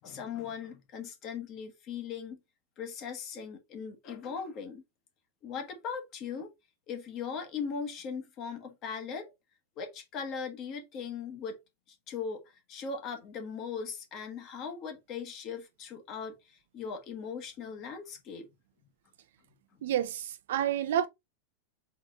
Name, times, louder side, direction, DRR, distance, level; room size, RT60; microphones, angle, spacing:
voice 1, 0.0-2.4 2.8-4.8 5.4-6.5 6.9-9.3 9.8-11.6 11.9-18.5, left 6 dB, 25° left, 1.1 m, -39 dB
voice 2, 19.8-21.1, right 10 dB, 65° right, 0.5 m, -29 dB
4.0 x 3.6 x 3.6 m
supercardioid pair, 175°, 0 cm